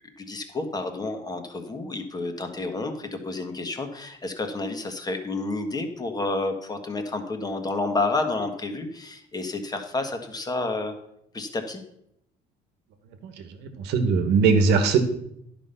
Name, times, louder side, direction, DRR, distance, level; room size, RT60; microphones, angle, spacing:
voice 1, 0.2-10.9 11.3-11.8, left 2 dB, 25° left, 5 dB, 1.5 m, -30 dB
voice 2, 13.2-15.0, right 5 dB, 85° right, 8 dB, 1.3 m, -21 dB
11.0 x 5.3 x 5.7 m, 0.76 s
cardioid pair, 110°, 17 cm